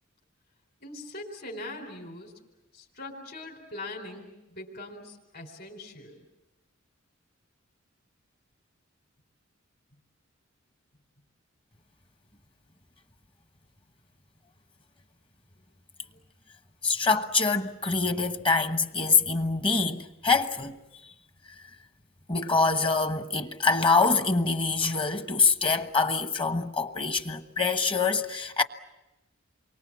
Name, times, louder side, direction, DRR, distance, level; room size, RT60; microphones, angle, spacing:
voice 1, 0.8-2.3 2.7-6.2, left 2 dB, 50° left, 4.1 m, -41 dB
voice 2, 16.8-20.8 21.0-21.1 22.3-28.6, left 4 dB, 25° left, 1.2 m, -25 dB
28.5 x 24.0 x 7.5 m
head